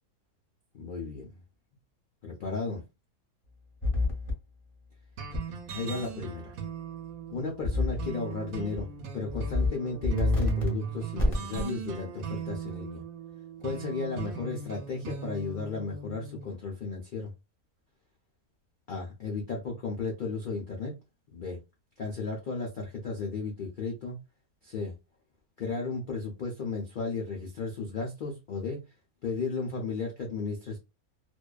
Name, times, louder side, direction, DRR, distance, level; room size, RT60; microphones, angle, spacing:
voice 1, 0.7-1.4 2.2-2.8 5.7-6.6 7.3-8.9 9.1-13.0 13.6-17.3 18.9-21.0 21.3-21.6 22.0-24.2 24.6-24.9 25.6-28.8 29.2-30.8, left 4 dB, 80° left, 0.4 m, -34 dB
sound 1, 3.8-4.3 5.3-5.4 7.6-8.1 8.5-8.8 9.3-9.7 10.0-10.7 11.2-11.6, left 3 dB, 30° left, 0.6 m, -27 dB
sound 2, 5.2-16.5, right 7 dB, 70° right, 1.0 m, -38 dB
2.6 x 2.2 x 2.2 m
omnidirectional pair, 1.6 m